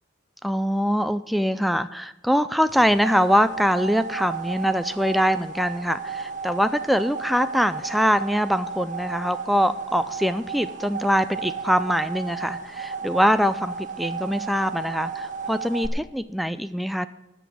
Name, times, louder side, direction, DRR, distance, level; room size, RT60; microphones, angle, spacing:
voice 1, 0.4-17.1, equal, ahead, 12 dB, 0.3 m, -23 dB
sound 1, 2.7-15.9, right 5 dB, 40° right, 1.4 m, -34 dB
13.0 x 6.1 x 9.2 m, 0.97 s
head